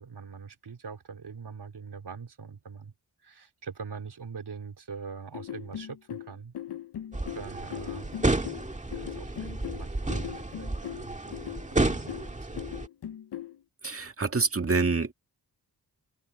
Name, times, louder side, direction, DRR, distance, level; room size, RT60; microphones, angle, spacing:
voice 1, 0.0-2.9 3.2-6.5 7.3-8.1 8.9-11.4 11.7-12.1 12.5-12.6, right 5 dB, 75° right, 4.2 m, -43 dB
sound 1, 5.3-13.6, left 11 dB, 75° left, 0.7 m, -39 dB
sound 2, 7.1-12.9, right 2 dB, 20° right, 1.8 m, -31 dB
voice 2, 13.8-15.1, right 4 dB, 35° right, 1.9 m, -27 dB
open air
wide cardioid pair, 90°, 40 cm